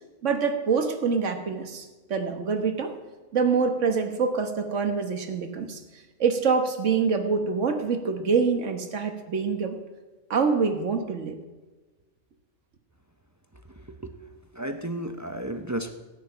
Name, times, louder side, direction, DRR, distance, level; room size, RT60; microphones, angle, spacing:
voice 1, 0.2-2.9 3.3-5.8 6.2-9.8 10.3-11.4, right 5 dB, 60° right, 7 dB, 1.5 m, -25 dB
voice 2, 13.5-14.2 14.5-15.9, right 1 dB, 25° right, 7 dB, 0.4 m, -34 dB
13.5 x 9.7 x 5.7 m, 1.2 s
omnidirectional pair, 1.4 m